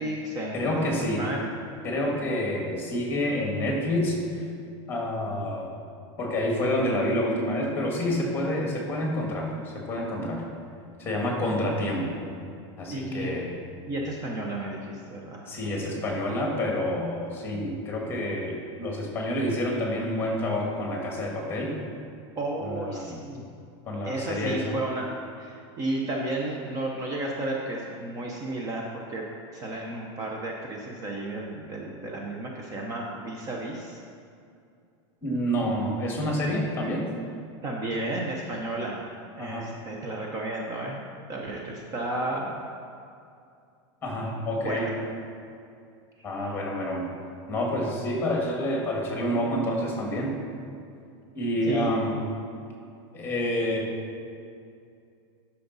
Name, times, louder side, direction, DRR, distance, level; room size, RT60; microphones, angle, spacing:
voice 1, 0.0-0.9 1.2-1.5 12.9-13.4 13.9-15.4 22.4-23.4 24.0-25.1 25.4-29.2 29.5-34.0 37.6-39.0 39.4-41.0 41.3-42.6 44.2-44.9 46.2-46.6 51.6-51.9, right 2 dB, 25° right, -1 dB, 0.7 m, -33 dB
voice 2, 0.5-1.2 1.8-4.5 4.9-5.7 6.2-10.4 11.0-12.2 12.8-13.5 15.5-21.8 22.6-23.2 23.9-24.8 35.2-37.1 39.4-39.7 44.0-44.9 46.2-47.1 47.5-50.4 51.3-52.2 53.1-53.9, left 1 dB, 15° left, -1 dB, 1.8 m, -28 dB
11.5 x 5.9 x 4.0 m, 2.5 s
supercardioid pair, 160°, 15 cm